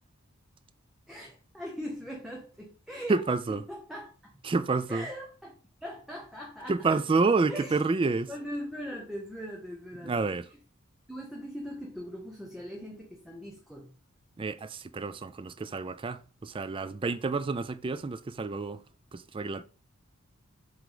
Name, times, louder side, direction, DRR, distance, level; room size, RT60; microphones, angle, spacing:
voice 1, 1.1-3.2 3.5-4.1 4.9-5.5 5.8-7.0 7.5-10.3 11.1-13.9, equal, ahead, 1.1 m, -40 dB
voice 2, 3.1-3.6 4.4-5.1 6.7-8.3 10.0-10.5 14.4-18.8 19.1-19.6, right 3 dB, 25° right, 0.4 m, -29 dB
7.6 x 3.5 x 4.8 m
head